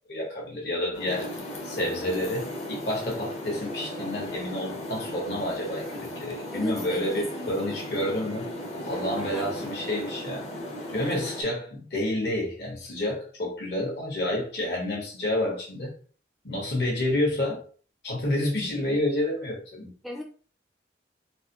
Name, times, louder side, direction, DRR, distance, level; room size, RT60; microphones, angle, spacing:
voice 1, 0.1-8.5 8.8-10.5 10.9-15.9 16.4-17.6 18.0-19.9, left 1 dB, 65° left, -2 dB, 1.4 m, -29 dB
sound 1, 0.9-11.4, left 1 dB, 35° left, 0.7 m, -36 dB
voice 2, 6.5-7.8 9.1-9.5 20.0-20.2, left 1 dB, ahead, 0 dB, 0.4 m, -37 dB
4.1 x 2.2 x 3.0 m, 0.43 s
head